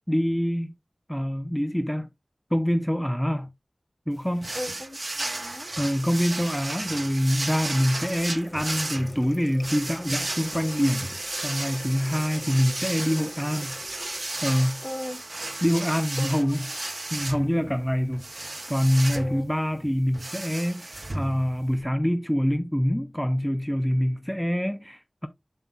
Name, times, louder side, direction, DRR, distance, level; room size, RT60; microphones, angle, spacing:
voice 1, 0.1-0.7 1.1-2.1 2.5-3.5 4.1-4.5 5.8-13.8 14.4-14.8 15.6-16.6 17.1-25.3, equal, 5° left, 0.5 m, -25 dB
sound 1, 4.4-21.8, right 2 dB, 55° right, 0.8 m, -34 dB
voice 2, 4.5-5.7 14.8-15.2 16.2-16.8 19.1-19.4, left 1 dB, 50° left, 3.3 m, -37 dB
Water tap faucet, 7.6-14.3, left 1 dB, 25° left, 1.4 m, -46 dB
7.2 x 7.1 x 2.3 m
wide cardioid pair, 45°, 0 cm